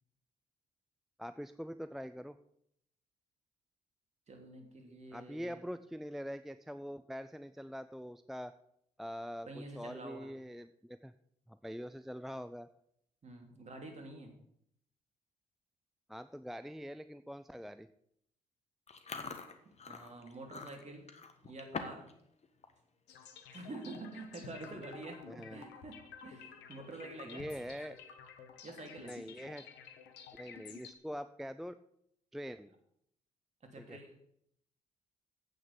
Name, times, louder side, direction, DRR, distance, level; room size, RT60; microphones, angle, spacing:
voice 1, 1.2-2.4 5.1-8.5 9.0-11.1 11.5-12.7 16.1-17.9 25.3-25.7 27.3-28.0 29.0-29.7 30.3-31.8 32.3-32.7 33.8-34.0, equal, ahead, 12 dB, 0.5 m, -44 dB
voice 2, 4.3-5.6 9.5-10.3 13.2-14.3 19.6-21.1 21.4-22.1 23.5-27.4 28.6-29.2 33.6-34.2, right 2 dB, 40° right, 3 dB, 3.0 m, -48 dB
Chewing mastication, 18.9-22.1 22.4-22.7 23.2-23.4 24.2-24.3 24.5-24.8 25.2-25.3 26.8-27.4, left 5 dB, 35° left, 1.5 m, -45 dB
sound 1, 23.1-30.9, left 7 dB, 70° left, 1.3 m, -52 dB
8.7 x 6.6 x 8.3 m, 0.71 s
hypercardioid pair, 50°, 18 cm